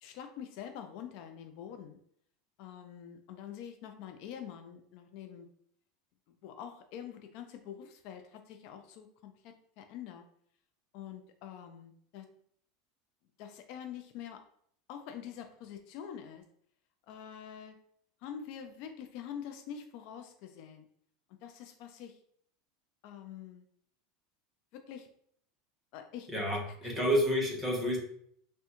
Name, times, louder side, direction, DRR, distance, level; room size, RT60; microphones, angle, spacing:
voice 1, 0.0-2.0 2.6-5.5 6.3-10.2 10.9-12.3 13.4-14.4 14.9-16.4 17.1-17.8 18.2-20.9 21.4-22.2 23.0-23.6 24.7-25.1 25.9-26.3 26.8-26.9, left 9 dB, 55° left, 6 dB, 0.3 m, -45 dB
voice 2, 26.3-28.0, equal, 5° right, -2 dB, 0.8 m, -29 dB
3.5 x 2.1 x 2.9 m, 0.65 s
supercardioid pair, 150°, 0 cm